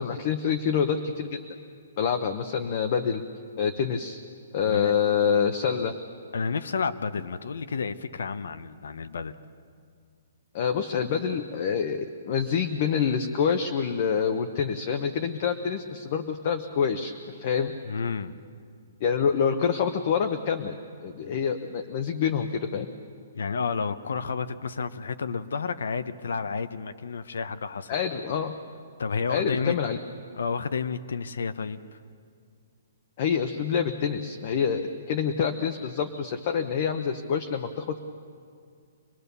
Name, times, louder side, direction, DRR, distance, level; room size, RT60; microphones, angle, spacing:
voice 1, 0.0-1.4 2.0-3.2 3.6-4.2 4.5-5.9 10.5-17.7 19.0-22.9 27.9-28.5 29.3-30.0 33.2-38.0, left 7 dB, 30° left, 7 dB, 0.8 m, -26 dB
voice 2, 6.3-9.3 17.8-18.3 23.3-28.0 28.4-28.5 29.0-29.8 30.3-31.8, left 5 dB, 85° left, 12 dB, 0.9 m, -31 dB
25.0 x 20.0 x 6.8 m, 2.2 s
hypercardioid pair, 175°, 0 cm